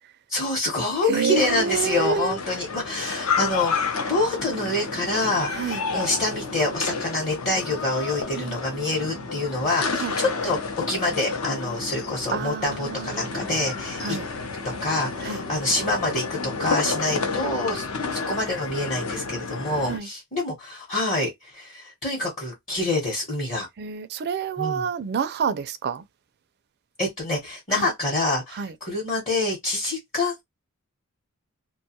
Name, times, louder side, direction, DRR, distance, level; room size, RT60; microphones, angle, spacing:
voice 1, 0.3-10.6 10.9-14.2 14.8-17.8 18.1-23.7 24.6-24.9 27.0-30.4, left 2 dB, 35° left, 0.9 m, -26 dB
voice 2, 1.0-2.4 5.5-5.8 8.4-8.6 10.0-10.1 12.3-13.6 14.0-14.3 15.2-15.4 17.6-17.7 19.9-20.1 23.8-26.0 27.7-27.9 28.6-28.7, right 6 dB, 45° right, 0.4 m, -28 dB
sound 1, 1.4-20.0, left 4 dB, 70° left, 0.6 m, -31 dB
2.5 x 2.3 x 2.8 m
head